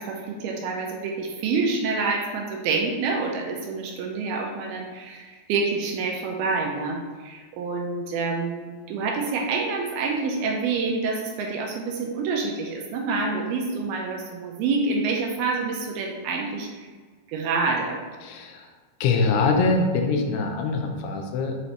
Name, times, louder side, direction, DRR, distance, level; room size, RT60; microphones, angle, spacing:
voice 1, 0.0-16.9 17.3-18.0, right 4 dB, 80° right, 0 dB, 2.4 m, -27 dB
voice 2, 18.2-18.7 19.0-21.6, left 3 dB, 90° left, 3 dB, 2.7 m, -23 dB
7.7 x 4.0 x 3.0 m, 1.5 s
omnidirectional pair, 4.7 m